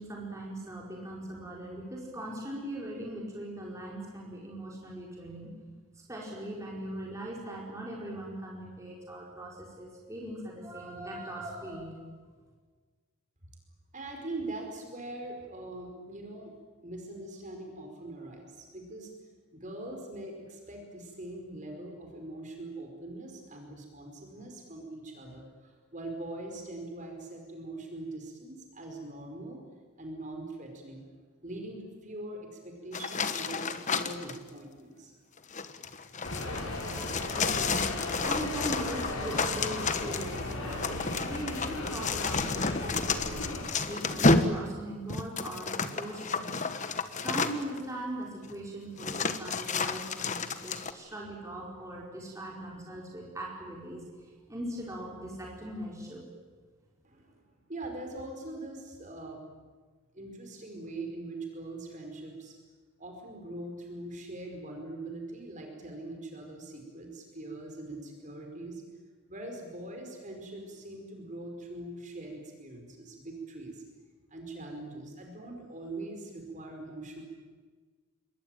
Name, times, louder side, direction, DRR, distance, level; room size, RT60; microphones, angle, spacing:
voice 1, 0.0-5.5 6.1-12.0 37.3-37.9 38.2-43.5 43.8-46.6 47.2-56.3, right 1 dB, 15° right, -3 dB, 4.7 m, -40 dB
voice 2, 13.9-16.5 16.8-19.1 19.5-29.6 30.0-31.1 31.4-35.1 57.0-57.4 57.7-59.4 60.1-62.6 63.0-68.8 69.3-73.8 74.3-77.2, right 2 dB, 35° right, 3 dB, 5.0 m, -42 dB
sound 1, 32.9-34.4 35.4-47.8 48.5-48.6 49.0-50.9, left 3 dB, 35° left, 1.3 m, -31 dB
sound 2, 36.2-43.6, left 1 dB, 75° left, 6.2 m, -36 dB
26.5 x 22.0 x 9.1 m, 1.4 s
head